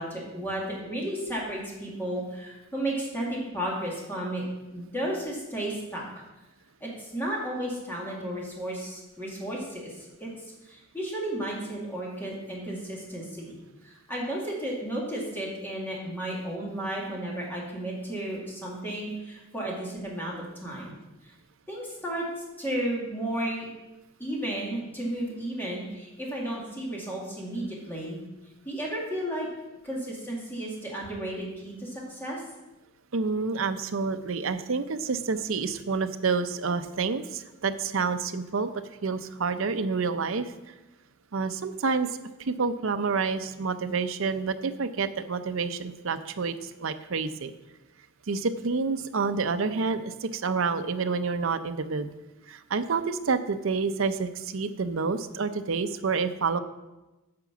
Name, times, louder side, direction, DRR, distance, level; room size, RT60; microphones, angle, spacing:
voice 1, 0.0-4.4 4.7-6.0 6.8-10.3 10.6-13.5 13.8-20.9 21.7-22.2 22.6-23.7 24.2-28.2 28.7-29.5 29.8-32.4, right 1 dB, 10° left, -4 dB, 2.2 m, -33 dB
voice 2, 33.1-38.7 39.0-40.5 41.3-42.1 42.5-47.5 48.3-52.1 52.5-56.6, right 4 dB, 65° right, 9 dB, 0.6 m, -28 dB
9.6 x 5.9 x 6.1 m, 1.1 s
head